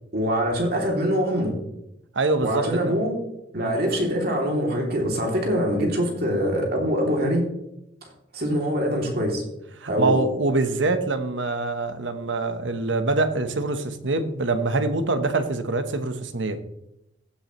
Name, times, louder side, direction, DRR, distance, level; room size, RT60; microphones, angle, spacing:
voice 1, 0.1-1.5 2.4-3.1 3.5-7.4 8.3-9.4 9.9-10.1, equal, 55° right, 0 dB, 3.0 m, -24 dB
voice 2, 2.1-3.0 9.8-16.6, right 3 dB, 85° right, 9 dB, 1.2 m, -24 dB
15.5 x 8.0 x 3.2 m, 0.83 s
head